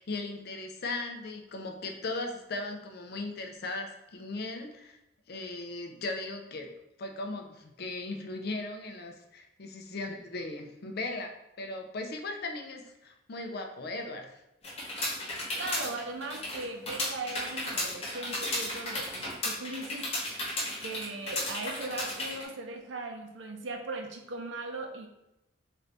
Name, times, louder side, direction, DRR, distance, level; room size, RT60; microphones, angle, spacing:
voice 1, 0.0-5.0 5.3-6.7 7.0-11.3 11.6-14.4, left 2 dB, 55° left, 4 dB, 0.5 m, -37 dB
sound 1, 14.6-22.4, left 1 dB, 35° left, 0.9 m, -34 dB
voice 2, 15.5-20.1 20.8-25.1, right 2 dB, 90° right, 4 dB, 0.6 m, -38 dB
3.8 x 2.7 x 3.3 m, 0.89 s
head